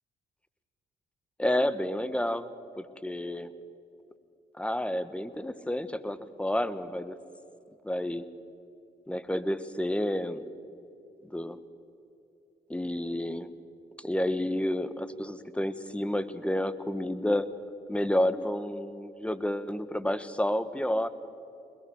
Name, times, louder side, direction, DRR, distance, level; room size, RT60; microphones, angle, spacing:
voice 1, 1.4-2.5 2.8-3.5 4.6-7.2 7.8-8.2 9.1-10.4 11.2-11.6 12.7-13.5 14.0-17.5 17.9-21.1, left 1 dB, 5° left, 14 dB, 1.3 m, -30 dB
21.5 x 21.5 x 6.4 m, 2.8 s
supercardioid pair, 55°, 17 cm